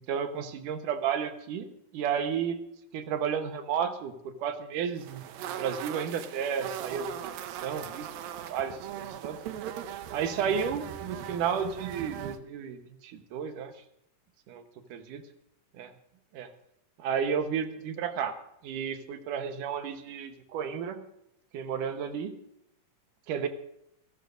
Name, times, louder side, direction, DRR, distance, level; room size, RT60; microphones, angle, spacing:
voice 1, 0.1-1.7 1.9-2.6 2.9-4.1 4.4-8.1 8.5-9.4 10.1-13.7 14.5-14.6 14.9-15.2 15.8-15.9 16.3-16.5 17.0-18.4 18.6-21.0 21.5-22.3 23.3-23.5, right 7 dB, 70° right, 7 dB, 2.6 m, -32 dB
sound 1, 5.0-12.4, right 10 dB, 90° right, 2.6 m, -39 dB
27.5 x 13.5 x 2.6 m, 0.79 s
omnidirectional pair, 3.9 m